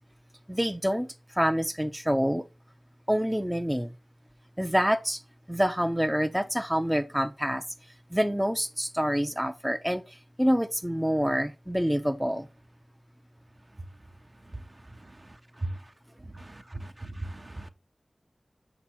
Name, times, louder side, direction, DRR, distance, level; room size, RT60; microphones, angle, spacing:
voice 1, 0.5-2.4 3.1-3.9 4.6-5.2 5.5-7.6 8.1-12.5, equal, 5° right, 0.5 m, -27 dB
voice 2, 16.3-17.7, right 2 dB, 40° right, 0.7 m, -37 dB
6.0 x 3.9 x 4.4 m
wide cardioid pair, 45°, 0 cm